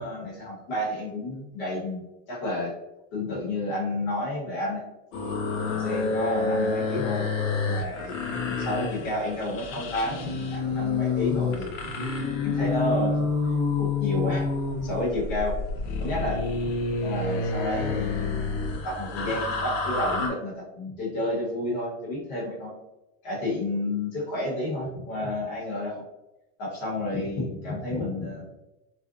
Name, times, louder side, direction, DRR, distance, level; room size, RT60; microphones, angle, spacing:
voice 1, 0.0-2.0 2.3-2.7 3.1-4.8 5.7-7.3 7.6-8.1 8.4-11.9 12.4-13.3 13.8-14.5 14.8-15.6 16.0-16.7 17.0-22.7 23.2-25.9 26.6-28.5, left 1 dB, 50° left, -5 dB, 1.2 m, -30 dB
sound 1, 5.1-20.3, left 4 dB, 80° left, 0.6 m, -28 dB
2.5 x 2.2 x 2.4 m, 0.97 s
supercardioid pair, 160°, 39 cm